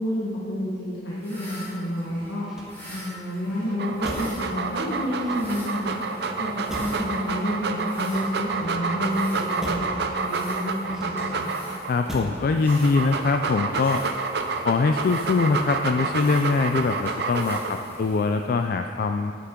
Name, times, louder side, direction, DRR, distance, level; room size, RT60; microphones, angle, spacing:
voice 1, 0.0-2.5 2.9-5.9 6.4-11.4, equal, 80° left, -7 dB, 1.4 m, -29 dB
sound 1, 1.1-18.7, equal, 15° left, 2.5 m, -45 dB
Motor vehicle (road), 2.4-3.2 4.0-4.5 5.1-5.8 6.7-7.1 7.9-8.7 9.6-10.0 10.9-11.5 12.1-12.5 12.8-13.3, equal, 5° right, 1.4 m, -38 dB
Dog, 3.7-11.9 12.5-17.9, right 4 dB, 65° right, 0.6 m, -29 dB
voice 2, 11.9-14.1 14.6-19.3, left 4 dB, 55° left, 6 dB, 0.3 m, -23 dB
9.8 x 8.5 x 3.7 m, 2.3 s
head